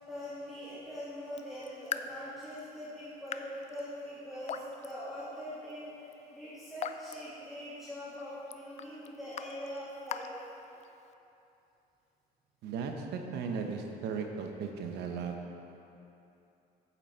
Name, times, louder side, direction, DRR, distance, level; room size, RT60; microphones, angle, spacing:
voice 1, 0.1-10.3, equal, ahead, -12 dB, 2.3 m, -42 dB
Raindrop / Drip, 1.2-11.1, left 7 dB, 40° left, 0.4 m, -45 dB
voice 2, 12.6-15.6, right 5 dB, 80° right, 4 dB, 1.0 m, -37 dB
8.6 x 8.2 x 4.5 m, 2.8 s
cardioid pair, 110°, 17 cm